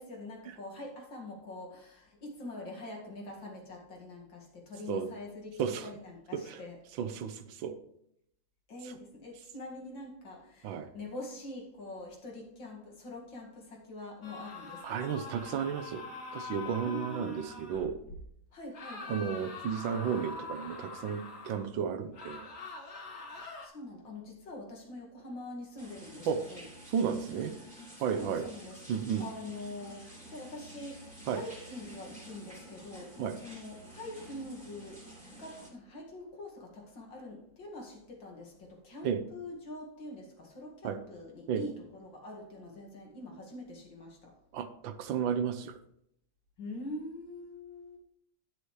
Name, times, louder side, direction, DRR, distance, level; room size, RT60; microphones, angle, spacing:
voice 1, 0.0-6.8 8.7-15.1 16.8-17.5 18.1-18.2 18.5-19.3 23.3-26.7 27.6-27.7 28.0-28.8 29.2-35.0 35.3-44.3 46.6-48.0, left 2 dB, 70° left, 2.8 m, -44 dB
voice 2, 7.0-7.8 10.6-10.9 14.8-16.0 16.3-18.0 19.1-22.4 26.3-26.4 26.9-27.5 28.0-28.4 28.9-29.3 31.3-31.4 33.2-33.4 39.0-39.2 40.8-41.0 41.5-41.6 44.5-45.7, right 7 dB, 85° right, 1.6 m, -33 dB
sound 1, 14.2-17.9 18.7-21.7 22.1-23.7, left 3 dB, 55° left, 2.5 m, -44 dB
sound 2, 25.8-35.7, equal, 5° right, 2.6 m, -50 dB
10.0 x 9.5 x 3.2 m
omnidirectional pair, 2.1 m